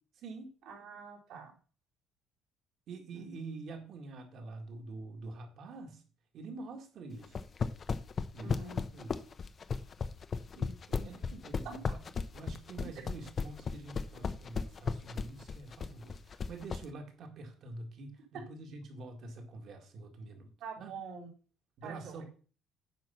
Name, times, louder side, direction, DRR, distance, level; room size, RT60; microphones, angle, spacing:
voice 1, 0.1-0.5 2.9-6.0 6.3-7.4 8.3-9.2 11.0-12.0 12.3-20.5 20.8-20.9 21.8-22.2, right 3 dB, 45° right, 4 dB, 2.0 m, -46 dB
voice 2, 0.7-1.5 3.1-3.4 8.4-8.8 10.5-11.1 11.6-11.8 20.6-21.3 21.8-22.2, right 4 dB, 65° right, -2 dB, 3.9 m, -46 dB
sound 1, 7.2-16.8, left 5 dB, 25° left, 0.6 m, -35 dB
9.4 x 5.7 x 5.6 m, 0.39 s
cardioid pair, 175°, 0 cm